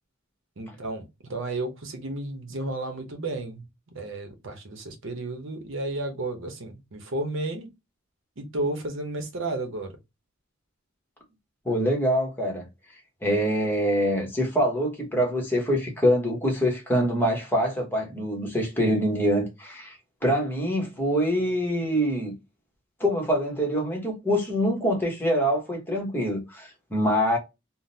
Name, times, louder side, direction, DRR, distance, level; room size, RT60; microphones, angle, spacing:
voice 1, 0.6-7.7 8.4-9.9, right 2 dB, 65° right, 0.8 m, -32 dB
voice 2, 11.6-12.7 13.2-20.0 20.2-22.3 23.0-27.4, equal, 10° left, 1.0 m, -25 dB
3.6 x 2.1 x 2.7 m
head